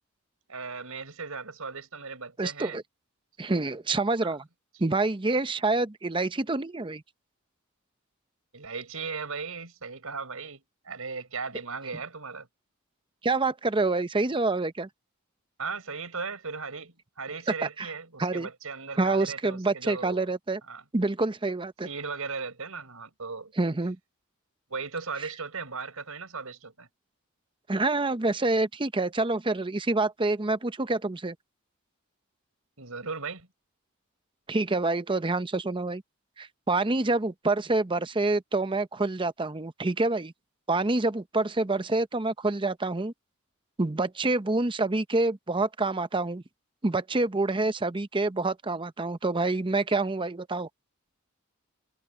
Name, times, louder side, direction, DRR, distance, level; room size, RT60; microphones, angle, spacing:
voice 1, 0.5-2.8 4.2-4.4 8.5-12.5 15.6-20.3 20.7-20.8 21.8-23.5 24.7-26.9 32.8-33.5, right 4 dB, 85° right, 4.6 m, -37 dB
voice 2, 2.4-2.8 3.4-4.5 4.8-7.0 13.2-14.9 17.8-17.9 18.2-18.5 19.0-20.6 20.9-21.9 23.6-24.0 27.7-31.4 34.5-36.0 36.4-40.3 40.7-43.1 43.8-46.4 46.8-50.7, right 2 dB, 25° right, 0.7 m, -27 dB
head